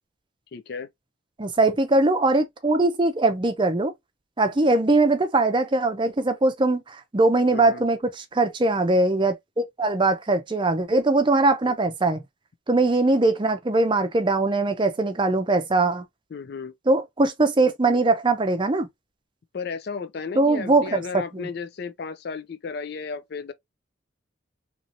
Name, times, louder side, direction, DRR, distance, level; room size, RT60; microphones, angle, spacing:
voice 1, 0.5-0.9 7.5-7.8 11.6-11.8 16.3-16.7 19.5-23.5, left 5 dB, 55° left, 0.4 m, -34 dB
voice 2, 1.4-3.9 4.4-12.2 12.7-16.0 16.9-18.9 20.4-21.0 21.3-21.5, right 2 dB, 25° right, 0.5 m, -21 dB
3.0 x 2.7 x 2.7 m
head